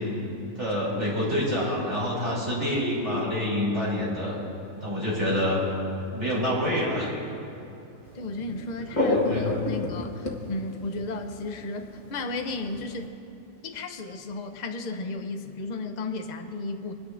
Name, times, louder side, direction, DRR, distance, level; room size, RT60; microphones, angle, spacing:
voice 1, 0.5-4.4 4.8-5.6 6.1-7.1 9.0-9.5, left 1 dB, 55° right, -7 dB, 3.5 m, -27 dB
voice 2, 8.1-13.1 13.6-16.9, left 2 dB, 45° left, 6 dB, 0.7 m, -34 dB
sound 1, 8.2-8.3 8.6-12.0 12.3-13.1, left 2 dB, 25° left, 1.3 m, -26 dB
22.5 x 10.0 x 2.5 m, 2.8 s
omnidirectional pair, 1.4 m